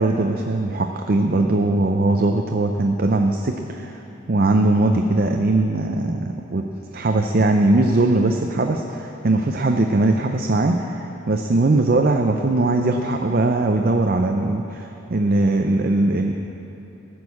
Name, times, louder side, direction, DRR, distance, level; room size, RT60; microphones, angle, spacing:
voice 1, 0.0-4.0 4.3-6.6 6.9-16.3, right 2 dB, 45° right, 4 dB, 0.5 m, -20 dB
14.0 x 6.3 x 8.4 m, 3.0 s
head